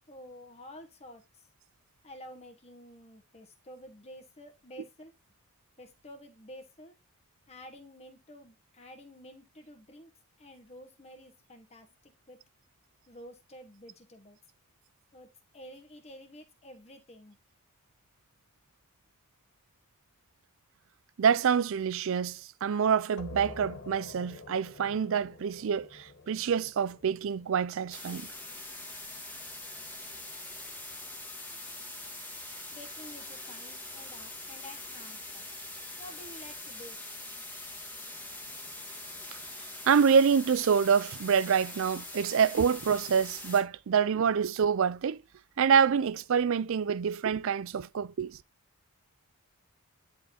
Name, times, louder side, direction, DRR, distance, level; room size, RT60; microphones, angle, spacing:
voice 1, 0.1-1.5 2.0-5.1 5.8-6.9 7.5-10.1 10.4-12.4 13.1-14.4 15.1-17.4 32.7-35.4 36.0-37.0, equal, 30° left, 1.3 m, -50 dB
voice 2, 21.2-28.3 39.9-45.2 45.6-48.4, right 6 dB, 60° right, 0.4 m, -26 dB
sound 1, 23.2-28.5, left 3 dB, 55° left, 0.9 m, -48 dB
sound 2, 27.9-43.6, left 2 dB, 10° left, 1.5 m, -43 dB
10.0 x 4.5 x 2.8 m
head